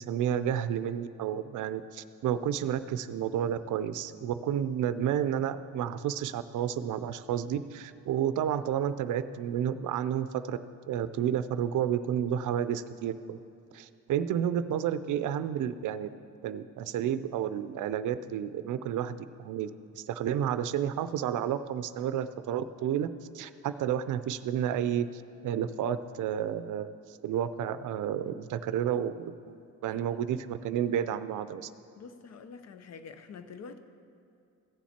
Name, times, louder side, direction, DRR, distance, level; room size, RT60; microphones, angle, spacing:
voice 1, 0.0-10.6 10.9-13.4 13.7-16.1 16.4-19.7 19.9-23.1 23.3-26.9 27.2-31.7, right 9 dB, 75° right, 13 dB, 0.5 m, -31 dB
voice 2, 32.0-33.8, left 5 dB, 55° left, 9 dB, 0.7 m, -46 dB
15.5 x 7.3 x 4.3 m, 2.6 s
cardioid pair, 115°, 31 cm